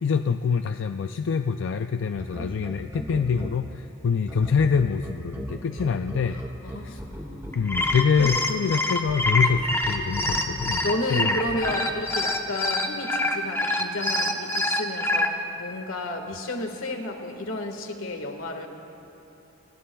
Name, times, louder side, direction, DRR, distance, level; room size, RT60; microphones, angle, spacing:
voice 1, 0.0-6.4 6.8-7.0 7.6-11.4, left 6 dB, 60° left, 8 dB, 0.4 m, -25 dB
sound 1, 2.2-3.5 4.3-8.3 9.1-10.7 11.5-11.7, equal, 15° right, 1.5 m, -36 dB
voice 2, 6.3-7.7 8.1-8.3 8.6-8.9 10.2-18.7, left 1 dB, 90° left, 4 dB, 1.6 m, -32 dB
sound 2, 7.5-15.3, left 2 dB, 10° left, 0.8 m, -25 dB
28.5 x 21.0 x 2.3 m, 3.0 s
head